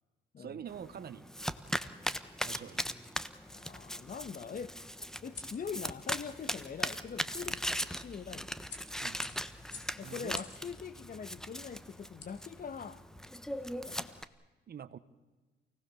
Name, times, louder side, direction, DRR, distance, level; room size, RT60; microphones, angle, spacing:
voice 1, 0.4-1.3 2.4-2.8 9.0-9.2 10.0-10.5 14.7-15.0, right 8 dB, 55° right, 1.2 m, -45 dB
Domestic sounds home sounds, 0.7-14.2, equal, 5° left, 1.2 m, -39 dB
sound 1, 3.1-13.0, left 5 dB, 60° left, 4.5 m, -54 dB
voice 2, 3.5-4.8 5.2-8.6 10.0-13.0 13.8-14.3, left 6 dB, 45° left, 1.3 m, -43 dB
28.5 x 18.5 x 7.0 m
cardioid pair, 90°, 20 cm